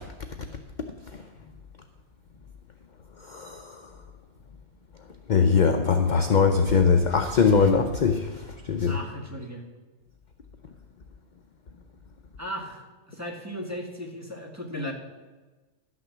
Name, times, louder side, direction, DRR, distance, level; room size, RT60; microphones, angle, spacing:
voice 1, 3.3-3.8 5.3-8.9, left 5 dB, 50° left, 6 dB, 0.6 m, -21 dB
voice 2, 8.9-9.6 12.4-14.9, equal, 10° right, 0 dB, 1.6 m, -36 dB
11.5 x 6.1 x 7.3 m, 1.2 s
omnidirectional pair, 1.3 m